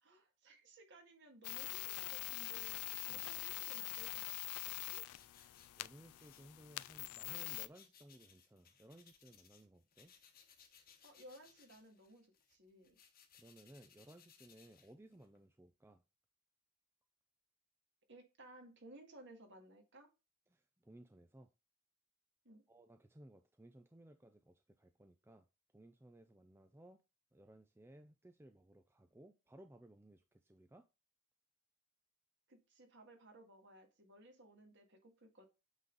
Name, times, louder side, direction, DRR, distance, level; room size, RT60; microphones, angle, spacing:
voice 1, 0.0-2.8 3.1-4.3 4.8-5.0 11.0-13.0 18.1-20.1 22.4-22.6 32.5-35.5, right 1 dB, 55° right, 2.0 m, -59 dB
sound 1, 1.4-7.7, left 19 dB, 80° left, 0.3 m, -44 dB
sound 2, 4.0-9.7 9.9-15.4, left 7 dB, 40° left, 1.1 m, -66 dB
voice 2, 5.4-10.1 13.3-16.0 20.5-21.5 22.7-25.5 25.7-27.0 27.3-30.9, right 1 dB, 10° right, 0.4 m, -60 dB
8.1 x 3.7 x 3.9 m
head